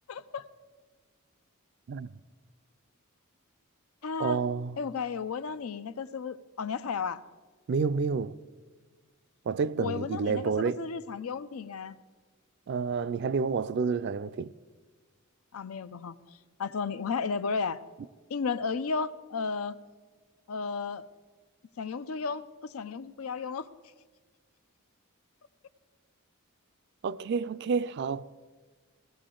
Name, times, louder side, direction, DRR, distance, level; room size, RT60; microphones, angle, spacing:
voice 1, 0.1-0.4 4.0-4.4 4.8-7.2 9.8-12.0 15.5-17.8 18.3-19.8 20.5-21.0 21.8-23.7, left 5 dB, 90° left, 0.5 m, -34 dB
voice 2, 4.2-4.8 7.7-8.3 9.5-10.9 12.7-14.5 27.0-28.2, right 5 dB, 55° right, 0.3 m, -29 dB
17.0 x 13.0 x 3.8 m
head